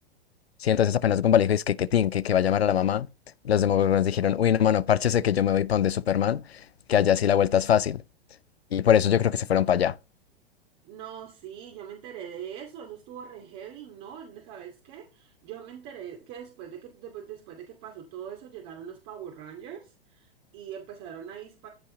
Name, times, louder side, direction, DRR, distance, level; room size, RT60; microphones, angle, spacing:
voice 1, 0.6-3.1 3.4-6.6 6.9-8.0 8.7-9.9, left 9 dB, 85° left, 0.7 m, -22 dB
voice 2, 10.8-21.7, right 9 dB, 45° right, 2.6 m, -42 dB
14.5 x 5.6 x 3.8 m
hypercardioid pair, 105°, 30 cm